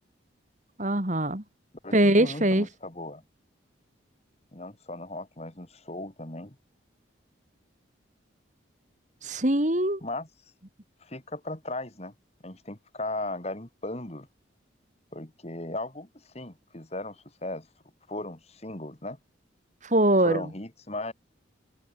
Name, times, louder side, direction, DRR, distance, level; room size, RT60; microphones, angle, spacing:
voice 1, 0.8-1.4 1.9-2.7 9.2-10.0 19.9-20.4, right 1 dB, 40° right, 2.7 m, -22 dB
voice 2, 1.8-3.2 4.5-6.6 10.0-10.3 11.0-12.1 12.4-14.3 15.1-16.1 16.3-17.7 18.1-19.2 20.2-21.1, left 2 dB, 35° left, 2.2 m, -37 dB
head